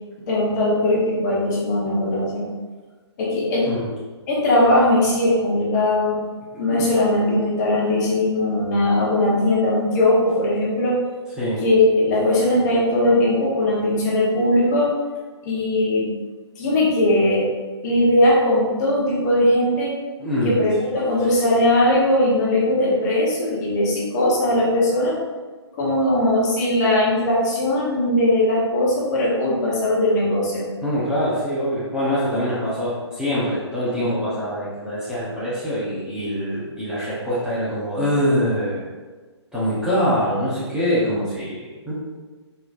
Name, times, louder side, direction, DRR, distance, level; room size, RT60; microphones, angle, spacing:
voice 1, 0.3-2.5 3.2-3.7 4.3-6.2 6.6-11.0 11.6-14.9 15.4-16.1 16.6-17.5 17.8-19.9 20.4-25.1 25.8-30.6, left 1 dB, 40° left, -5 dB, 1.2 m, -19 dB
voice 2, 20.2-20.6 30.8-38.9 39.5-41.9, equal, 5° right, -11 dB, 0.8 m, -24 dB
4.1 x 2.9 x 2.5 m, 1.3 s
figure-of-eight pair, 135°, 15 cm